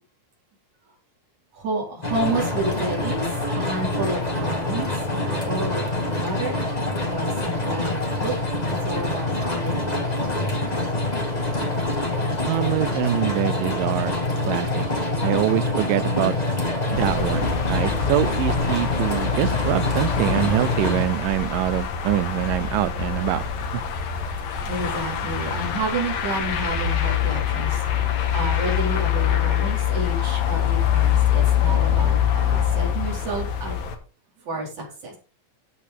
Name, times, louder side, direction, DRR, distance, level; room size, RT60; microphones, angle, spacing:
voice 1, 1.5-6.6 7.0-8.3 8.7-10.8 24.6-33.8 34.4-35.2, right 2 dB, 60° right, 5.5 m, -30 dB
sound 1, 2.0-21.0, left 2 dB, 20° left, 1.2 m, -25 dB
voice 2, 12.5-14.2 14.5-14.9 15.2-16.4 16.9-23.4 23.7-23.8, right 15 dB, 85° right, 2.3 m, -24 dB
sound 2, 16.9-34.0, left 9 dB, 85° left, 3.4 m, -24 dB
12.0 x 8.4 x 3.7 m
omnidirectional pair, 3.9 m